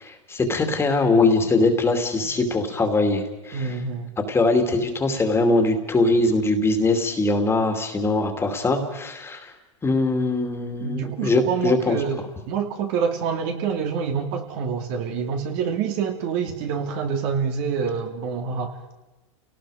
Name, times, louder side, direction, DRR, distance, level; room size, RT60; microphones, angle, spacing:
voice 1, 0.0-3.8 4.3-9.5 9.8-12.0, left 2 dB, 15° left, 5 dB, 2.6 m, -22 dB
voice 2, 3.5-4.1 10.8-18.7, right 6 dB, 55° right, 4 dB, 2.8 m, -27 dB
29.5 x 18.5 x 5.0 m, 1.0 s
hypercardioid pair, 120°, 16 cm